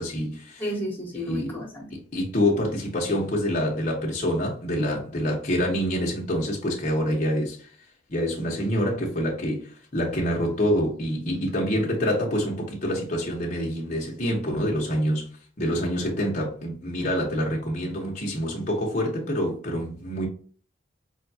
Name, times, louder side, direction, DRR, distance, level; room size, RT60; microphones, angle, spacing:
voice 1, 0.0-0.6 1.2-1.6 1.9-7.6 8.1-15.2 15.6-20.3, equal, 35° left, 0.9 m, -26 dB
voice 2, 0.6-1.9, equal, 10° left, 1.3 m, -32 dB
5.0 x 2.3 x 2.7 m
head